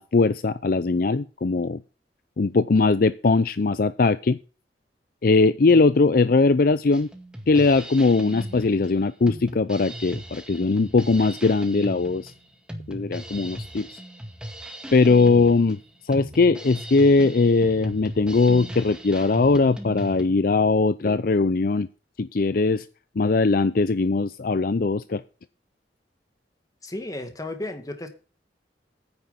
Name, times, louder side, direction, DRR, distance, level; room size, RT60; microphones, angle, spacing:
voice 1, 0.0-1.8 2.4-4.4 5.2-7.1 7.5-12.3 12.9-14.0 14.9-15.8 16.1-21.9 22.2-22.8 23.2-25.2, left 3 dB, 55° left, 13 dB, 0.5 m, -20 dB
Drum kit, 6.9-20.2, equal, 5° right, 2.0 m, -38 dB
voice 2, 26.8-28.1, left 2 dB, 20° left, 6 dB, 2.0 m, -33 dB
9.8 x 9.2 x 5.2 m, 0.35 s
head